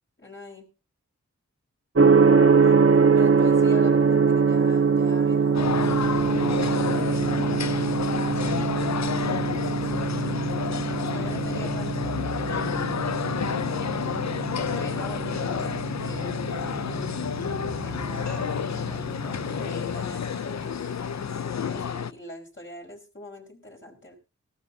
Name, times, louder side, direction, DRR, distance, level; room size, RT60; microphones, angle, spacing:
voice 1, 0.2-0.7 2.6-2.8 3.1-5.9 6.4-7.5 8.1-12.2 14.5-17.1 17.8-20.9 21.2-24.1, left 1 dB, 40° left, 1 dB, 5.0 m, -43 dB
Gong, 2.0-19.8, right 5 dB, 45° right, 1.3 m, -23 dB
sound 1, 5.5-22.1, left 7 dB, 65° left, 0.6 m, -30 dB
18.0 x 15.0 x 2.8 m, 0.30 s
wide cardioid pair, 60°, 30 cm